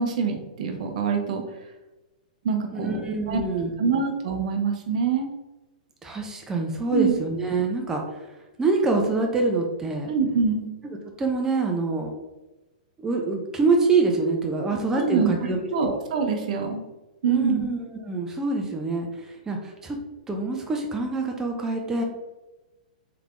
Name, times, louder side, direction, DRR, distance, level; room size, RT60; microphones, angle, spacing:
voice 1, 0.0-1.4 2.4-3.0 3.3-3.4 3.8-5.3 6.9-7.1 10.1-10.7 14.9-15.3 15.7-16.8 17.2-17.6, right 5 dB, 60° right, 4 dB, 0.7 m, -24 dB
voice 2, 2.7-4.0 6.0-8.3 8.6-10.1 11.2-12.1 13.0-16.0 17.3-17.8 18.0-20.0 20.3-22.0, right 3 dB, 10° right, 1 dB, 0.5 m, -25 dB
3.4 x 3.3 x 2.5 m, 1.1 s
hypercardioid pair, 130°, 4 cm